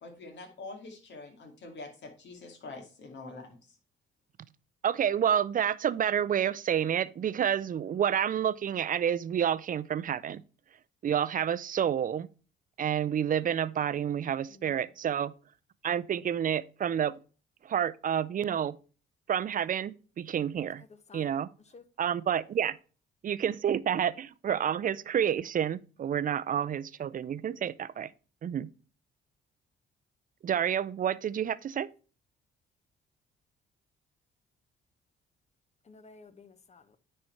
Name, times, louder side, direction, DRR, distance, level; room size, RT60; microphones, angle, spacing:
voice 1, 0.0-3.6, left 3 dB, 60° left, 2.3 m, -45 dB
voice 2, 4.8-10.4 11.0-12.3 12.8-15.3 15.8-17.1 17.6-18.7 19.3-20.8 21.1-21.5 22.0-22.8 23.2-28.1 28.4-28.7 30.4-31.9, right 9 dB, 45° right, 0.5 m, -29 dB
voice 3, 14.5-14.9 20.8-21.3 21.6-21.8 35.8-37.0, left 4 dB, 35° left, 1.0 m, -54 dB
9.7 x 4.3 x 4.5 m
cardioid pair, 90°, 20 cm